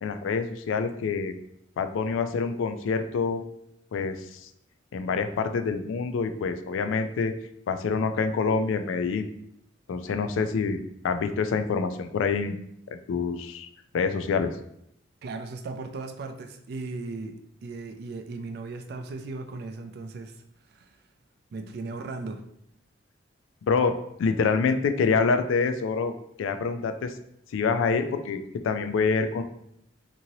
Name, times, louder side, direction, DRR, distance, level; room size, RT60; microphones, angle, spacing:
voice 1, 0.0-1.3 1.8-3.4 3.9-4.4 4.9-7.3 7.7-9.3 9.9-10.8 11.0-12.6 12.9-13.7 13.9-14.5 23.7-23.9 24.2-26.1 26.4-27.1 27.5-29.4, left 5 dB, 90° left, 8 dB, 0.3 m, -26 dB
voice 2, 15.2-17.4 17.6-20.4 20.7-21.0 21.5-22.4, right 3 dB, 55° right, 7 dB, 0.3 m, -37 dB
2.9 x 2.6 x 2.7 m, 0.75 s
head